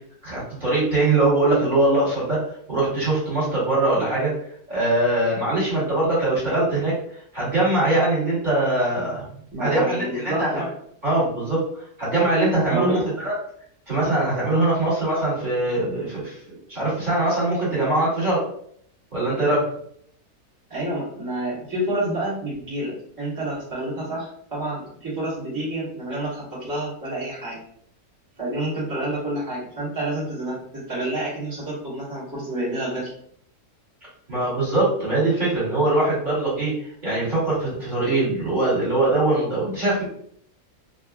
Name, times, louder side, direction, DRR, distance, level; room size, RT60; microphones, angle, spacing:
voice 1, 0.2-2.4 2.7-4.3 4.7-6.9 7.3-9.2 9.6-10.6 11.0-13.3 13.9-16.4 16.7-18.4 19.1-19.6 34.3-36.7 37.0-40.1, right 2 dB, 30° right, -9 dB, 1.5 m, -22 dB
voice 2, 9.5-10.7 12.7-13.0 20.7-27.6 28.4-33.1, right 1 dB, 15° right, -10 dB, 1.1 m, -29 dB
3.5 x 2.2 x 2.3 m, 0.65 s
omnidirectional pair, 1.6 m